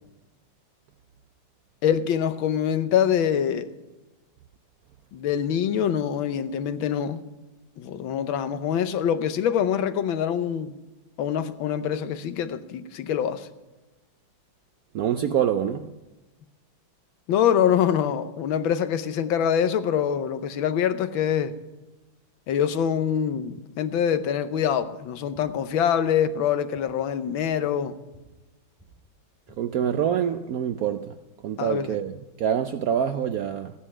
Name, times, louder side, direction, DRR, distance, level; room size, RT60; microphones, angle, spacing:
voice 1, 1.8-3.7 5.1-7.2 7.8-10.7 11.2-13.5 17.3-21.6 22.5-28.0 31.6-32.0, left 8 dB, 85° left, 1.6 m, -24 dB
voice 2, 14.9-15.9 29.6-31.1 31.4-33.7, right 9 dB, 75° right, 0.8 m, -26 dB
sound 1, 25.3-25.4 26.0-26.1 26.7-26.8 27.4-27.5 28.1-28.2 28.7-28.9 29.3-29.6, right 1 dB, 5° left, 5.3 m, -55 dB
15.0 x 9.9 x 6.1 m
omnidirectional pair, 2.1 m